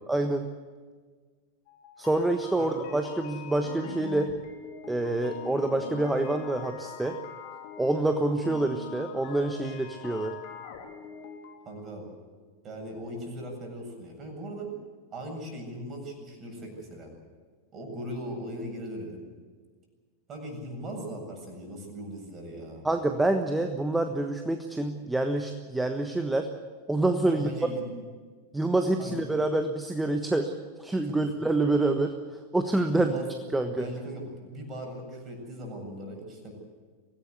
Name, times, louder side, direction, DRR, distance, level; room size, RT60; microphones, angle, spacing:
voice 1, 0.1-0.5 2.0-4.3 4.9-7.2 7.8-10.3 22.8-26.5 26.9-27.5 28.5-30.5 30.8-32.1 32.5-33.1 33.5-33.9, right 2 dB, 5° right, 6 dB, 1.3 m, -27 dB
sound 1, 1.7-11.6, left 7 dB, 45° left, 3.3 m, -42 dB
voice 2, 11.6-12.1 12.6-14.7 15.1-17.1 17.7-19.3 20.3-22.9 27.3-28.0 29.0-29.2 31.1-31.2 32.9-33.3 33.6-36.5, equal, 25° right, 2 dB, 7.6 m, -39 dB
24.5 x 18.0 x 8.2 m, 1.5 s
figure-of-eight pair, 90°, 0 cm